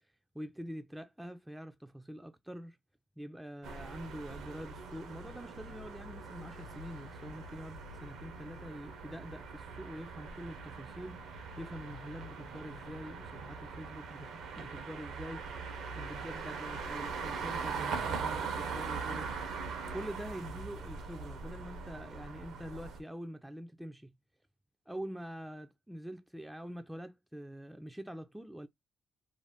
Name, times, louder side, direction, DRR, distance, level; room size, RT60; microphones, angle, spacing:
voice 1, 0.3-2.8 3.2-15.5 15.9-19.4 19.9-24.1 24.9-28.7, equal, 5° right, 0.3 m, -45 dB
sound 1, 3.6-23.0, right 5 dB, 85° right, 0.7 m, -41 dB
2.6 x 2.1 x 3.3 m
cardioid pair, 90°, 0 cm